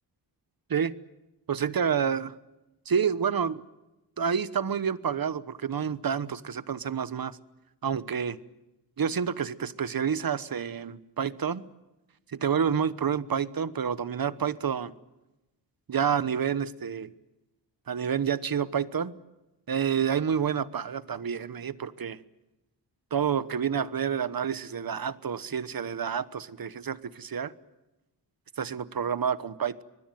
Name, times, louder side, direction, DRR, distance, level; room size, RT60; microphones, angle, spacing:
voice 1, 1.5-2.3 2.9-3.6 4.2-7.4 7.8-8.4 9.0-11.6 12.3-14.9 15.9-17.1 17.9-19.1 19.7-22.2 23.1-27.5 28.6-29.8, right 7 dB, 55° right, 15 dB, 1.1 m, -29 dB
24.5 x 20.5 x 9.2 m, 0.99 s
wide cardioid pair, 105°, 42 cm